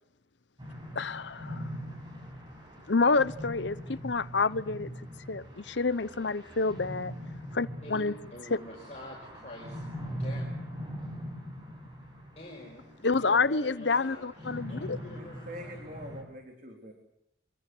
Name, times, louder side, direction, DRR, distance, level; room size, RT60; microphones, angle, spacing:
sound 1, 0.6-16.2, equal, 25° right, 7.1 m, -42 dB
voice 1, 0.9-1.7 2.9-4.9 5.3-7.1 7.5-8.1 8.5-8.6 13.0-15.0, left 4 dB, 70° left, 0.9 m, -28 dB
voice 2, 8.3-10.6 12.4-14.3 14.7-15.8, left 1 dB, 35° left, 5.5 m, -46 dB
voice 3, 15.1-16.9, equal, 45° right, 3.6 m, -44 dB
25.0 x 25.0 x 7.9 m
head